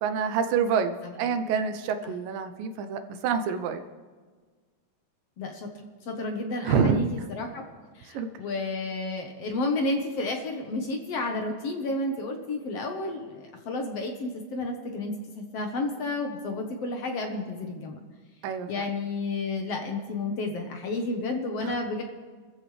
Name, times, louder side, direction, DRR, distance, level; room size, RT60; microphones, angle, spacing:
voice 1, 0.0-3.8 6.6-7.1 8.1-8.3 18.4-18.9 21.6-21.8, right 6 dB, 85° right, 8 dB, 2.6 m, -27 dB
voice 2, 5.4-7.6 8.0-18.0 18.7-22.0, left 2 dB, 55° left, 3 dB, 2.0 m, -31 dB
29.5 x 14.0 x 3.4 m, 1.4 s
omnidirectional pair, 3.8 m